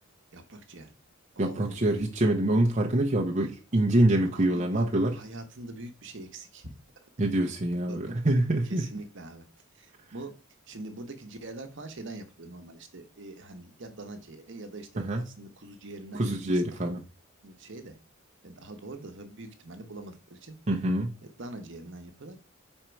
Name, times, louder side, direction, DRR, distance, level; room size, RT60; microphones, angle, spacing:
voice 1, 0.3-0.9 1.4-1.9 4.3-6.7 7.0-7.1 7.9-8.2 8.6-9.5 9.7-10.3 10.7-16.9 17.4-18.0 18.4-20.5 21.2-22.4, right 2 dB, 55° right, 0.9 m, -44 dB
voice 2, 1.4-5.2 7.2-8.8 15.0-15.2 16.2-17.0 20.7-21.1, right 1 dB, 35° right, 0.7 m, -25 dB
5.1 x 4.3 x 4.5 m
head